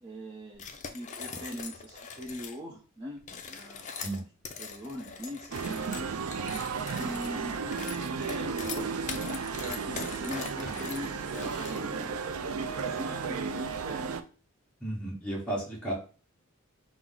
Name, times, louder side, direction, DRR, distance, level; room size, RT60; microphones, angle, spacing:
voice 1, 0.0-3.2 3.5-4.2 4.6-6.3 6.9-7.6 8.1-8.9 9.6-14.2, equal, 25° right, -3 dB, 0.6 m, -42 dB
sound 1, 0.5-2.6 3.2-12.1, left 5 dB, 35° left, 0.5 m, -42 dB
sound 2, 5.5-14.2, right 5 dB, 85° right, 0.4 m, -34 dB
voice 2, 14.8-15.9, right 1 dB, 5° left, -5 dB, 1.2 m, -33 dB
5.9 x 2.0 x 3.9 m, 0.36 s
head